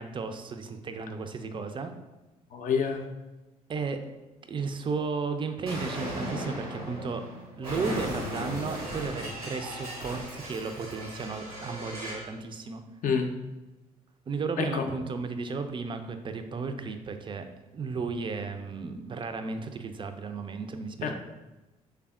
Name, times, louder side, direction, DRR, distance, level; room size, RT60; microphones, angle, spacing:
voice 1, 0.0-1.9 3.7-4.0 4.5-7.2 7.6-12.8 14.3-17.5 17.7-21.2, right 4 dB, 25° right, 8 dB, 0.4 m, -34 dB
voice 2, 2.5-3.1 13.0-13.3 14.6-14.9 21.0-21.2, left 6 dB, 45° left, 4 dB, 0.5 m, -27 dB
sound 1, 2.9-3.0 3.9-4.0 5.0-5.1 6.0-6.1 6.9-7.0 7.6-7.7 8.1-8.2 8.6-11.8, right 2 dB, 20° left, 0.8 m, -53 dB
Explosion, 5.6-12.3, equal, 90° right, 0.8 m, -37 dB
3.4 x 3.4 x 2.3 m, 1.1 s
figure-of-eight pair, 45°, 19 cm